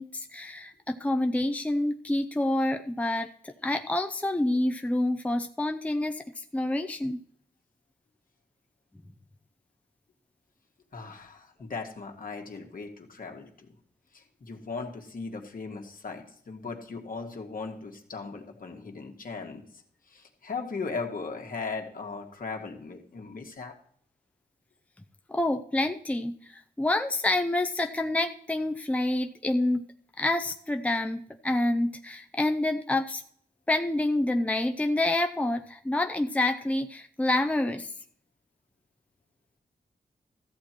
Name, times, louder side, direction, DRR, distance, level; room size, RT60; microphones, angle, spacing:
voice 1, 0.0-7.2 25.3-29.8 30.2-33.2 33.7-37.9, left 1 dB, 10° left, 7 dB, 0.6 m, -28 dB
voice 2, 10.9-13.7 14.1-19.6 20.1-23.7, left 4 dB, 60° left, 2 dB, 1.9 m, -38 dB
14.0 x 7.7 x 4.5 m, 0.62 s
wide cardioid pair, 85°, 16 cm